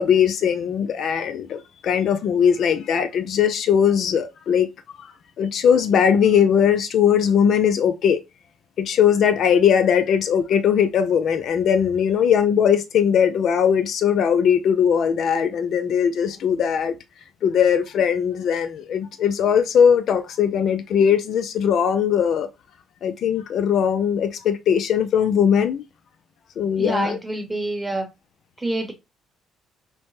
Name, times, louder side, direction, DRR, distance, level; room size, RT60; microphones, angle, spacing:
voice 1, 0.0-4.7 5.0-5.1 5.4-8.2 8.8-16.9 17.4-22.5 23.0-25.8 26.6-27.2, left 8 dB, 60° left, 0.3 m, -19 dB
voice 2, 26.8-28.1 28.6-28.9, right 2 dB, 15° right, 0.9 m, -27 dB
2.8 x 2.1 x 3.0 m
supercardioid pair, 75°, 0 cm